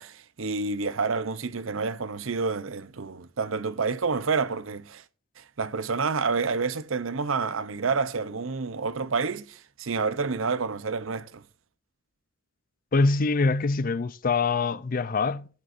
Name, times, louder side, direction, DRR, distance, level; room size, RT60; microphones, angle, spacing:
voice 1, 0.0-5.0 5.4-11.4, right 4 dB, 80° right, 0.7 m, -29 dB
voice 2, 12.9-15.5, left 3 dB, 45° left, 0.5 m, -24 dB
16.5 x 9.3 x 2.6 m
head